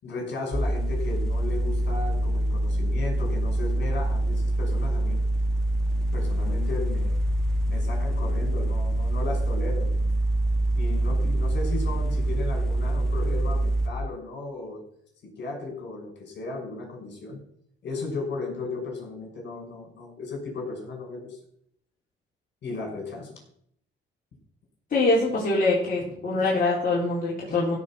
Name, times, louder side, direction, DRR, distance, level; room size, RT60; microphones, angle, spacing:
voice 1, 0.0-5.2 6.1-7.1 7.7-10.0 10.7-14.8 15.2-17.4 17.8-21.4 22.6-23.4 26.1-26.2 27.5-27.7, left 3 dB, 60° left, 1 dB, 5.9 m, -35 dB
sound 1, 0.5-13.9, right 1 dB, 5° left, 1.7 m, -25 dB
voice 2, 24.9-27.7, left 2 dB, 45° left, -5 dB, 4.1 m, -24 dB
16.0 x 5.3 x 7.3 m, 0.68 s
cardioid pair, 90°, 20 cm